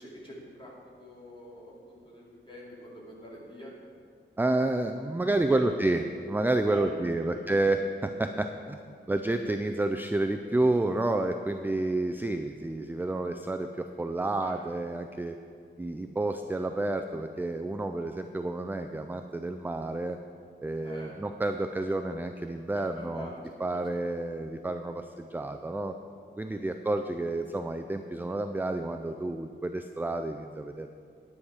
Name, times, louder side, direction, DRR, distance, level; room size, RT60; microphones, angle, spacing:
voice 1, 0.0-3.8 5.5-5.8 6.7-7.4 14.4-14.5 20.8-21.2 22.7-23.4 23.7-24.0 25.1-25.2 26.5-26.8, equal, 25° left, -5 dB, 2.8 m, -45 dB
voice 2, 4.4-8.8 9.1-15.4 15.8-20.2 20.6-23.3 23.6-26.0 26.4-30.9, right 2 dB, 10° right, 6 dB, 0.3 m, -30 dB
10.0 x 9.8 x 4.8 m, 2.3 s
wide cardioid pair, 140°, 20 cm